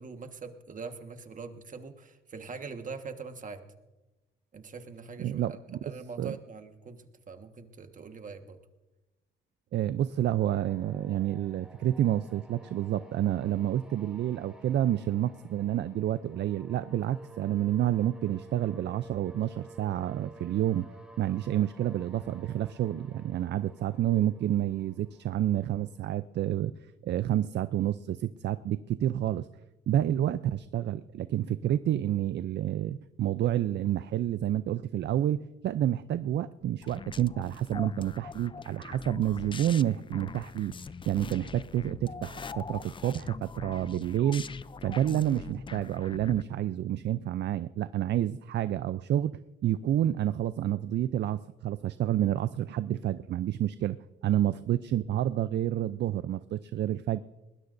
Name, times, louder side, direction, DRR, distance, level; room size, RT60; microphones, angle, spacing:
voice 1, 0.0-3.6 4.5-8.6, right 4 dB, 40° right, 7 dB, 1.5 m, -43 dB
voice 2, 5.2-5.8 6.2-6.4 9.7-20.9 21.2-26.7 27.0-29.5 29.9-40.7 41.1-44.4 44.8-54.0 54.2-57.2, right 12 dB, 60° right, 14 dB, 0.5 m, -29 dB
sound 1, 10.1-26.0, right 2 dB, 5° right, 3.0 m, -53 dB
sound 2, 36.8-46.4, left 5 dB, 25° left, 0.4 m, -42 dB
21.0 x 20.0 x 2.6 m, 1.1 s
cardioid pair, 90°, 20 cm